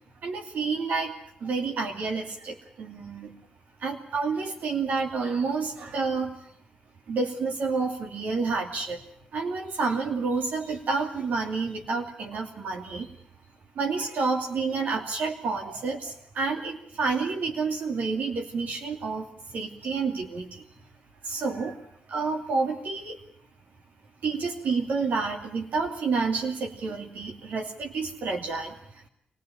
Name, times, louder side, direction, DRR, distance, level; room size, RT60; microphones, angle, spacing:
voice 1, 0.2-1.1 1.4-3.3 3.8-6.4 7.1-9.0 9.3-13.1 13.7-20.6 21.2-21.8 22.1-23.2 24.2-28.8, right 4 dB, 70° right, 1 dB, 2.7 m, -29 dB
23.5 x 17.0 x 8.8 m, 0.71 s
supercardioid pair, 50°, 3 cm